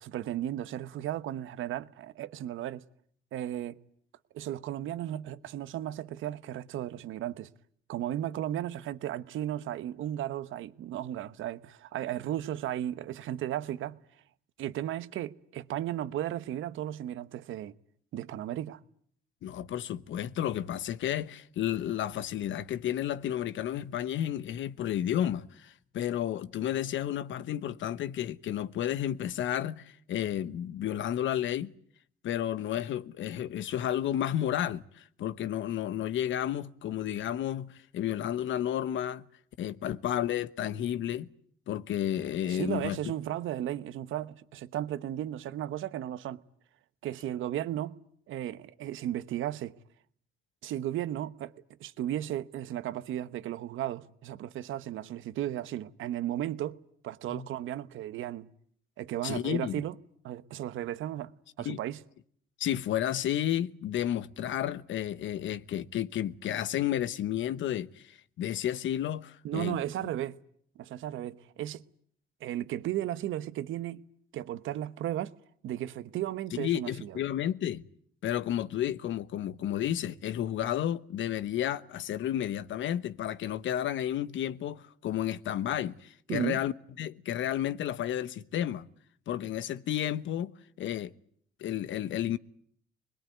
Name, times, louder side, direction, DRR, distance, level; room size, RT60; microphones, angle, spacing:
voice 1, 0.0-2.8 3.3-3.8 4.3-7.5 7.9-14.0 14.6-17.7 18.1-18.8 42.5-46.4 47.0-47.9 48.3-49.7 50.6-51.5 51.8-56.8 57.0-58.5 59.0-59.9 60.2-62.0 69.4-70.4 70.8-71.8 72.4-74.0 74.3-75.3 75.6-77.2 86.3-86.6, right 12 dB, 80° right, 1.1 m, -35 dB
voice 2, 19.4-31.7 32.2-39.2 39.6-41.3 41.7-43.0 57.3-57.4 59.2-59.8 61.6-61.8 62.6-69.8 76.6-77.8 78.2-86.7 87.0-88.9 89.3-90.5 90.8-91.1 91.6-92.4, left 11 dB, 75° left, 1.1 m, -32 dB
25.5 x 21.0 x 9.4 m
cardioid pair, 90°, 20 cm